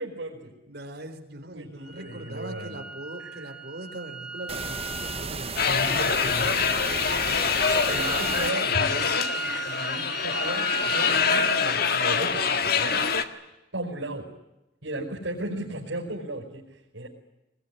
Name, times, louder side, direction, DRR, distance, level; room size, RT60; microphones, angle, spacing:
voice 1, 0.0-0.5 1.5-2.8 3.2-3.5 5.6-6.6 7.7-13.1 13.7-14.3 14.8-17.1, right 1 dB, 90° right, -2 dB, 5.6 m, -35 dB
voice 2, 0.7-5.8 6.2-7.5, right 1 dB, 60° right, 5 dB, 4.1 m, -41 dB
sound 1, 1.8-11.5, right 2 dB, ahead, 6.6 m, -36 dB
sound 2, 4.5-8.5, right 5 dB, 35° right, 1.1 m, -34 dB
sound 3, 5.6-13.2, left 6 dB, 55° left, 1.8 m, -25 dB
23.5 x 22.0 x 10.0 m, 0.95 s
head